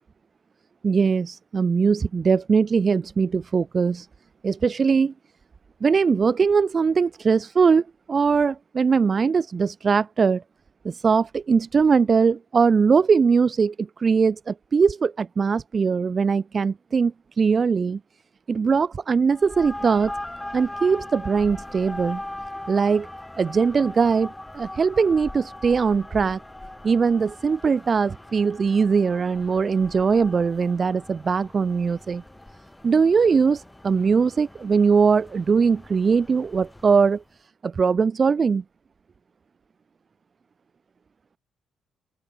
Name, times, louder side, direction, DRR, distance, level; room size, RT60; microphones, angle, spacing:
voice 1, 0.8-4.1 4.4-5.1 5.8-10.4 10.8-18.0 18.5-20.1 20.5-22.2 22.7-23.1 23.4-26.4 26.8-32.2 32.8-37.2 37.6-38.6, right 5 dB, 40° right, 0.4 m, -21 dB
sound 1, 19.3-37.2, left 1 dB, 10° left, 2.5 m, -40 dB
open air
cardioid pair, 90°, 0 cm